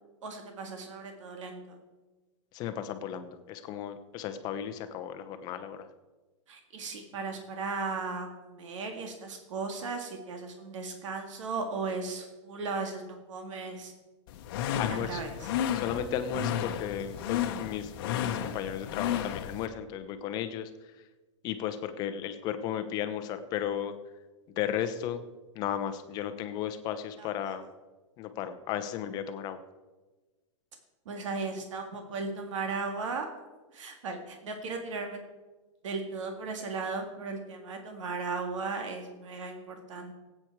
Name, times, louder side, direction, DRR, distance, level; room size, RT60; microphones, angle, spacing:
voice 1, 0.2-1.8 6.5-13.9 14.9-15.5 27.2-27.6 31.1-33.3 33.7-35.2 35.8-40.1, right 4 dB, 85° right, 4 dB, 1.9 m, -36 dB
voice 2, 2.5-5.9 14.8-15.2 15.7-20.7 21.4-23.9 24.6-25.2 25.5-27.6 28.2-29.6, left 9 dB, 25° left, 9 dB, 0.8 m, -34 dB
sound 1, 14.3-19.7, left 9 dB, 45° left, 1.0 m, -33 dB
18.0 x 8.8 x 4.6 m, 1.2 s
supercardioid pair, 170°, 16 cm